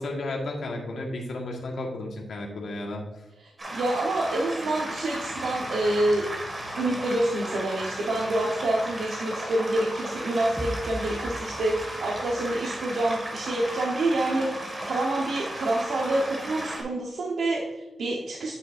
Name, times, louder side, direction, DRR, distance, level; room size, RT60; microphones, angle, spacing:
voice 1, 0.0-3.0, left 2 dB, 70° left, 0 dB, 1.5 m, -33 dB
voice 2, 3.4-6.3 6.8-18.5, right 1 dB, 90° right, -2 dB, 1.0 m, -27 dB
sound 1, 3.6-16.8, right 1 dB, 25° right, 1.8 m, -35 dB
sound 2, 10.6-12.4, equal, 5° right, 0.6 m, -37 dB
8.9 x 6.8 x 2.5 m, 1.0 s
wide cardioid pair, 165°, 0 cm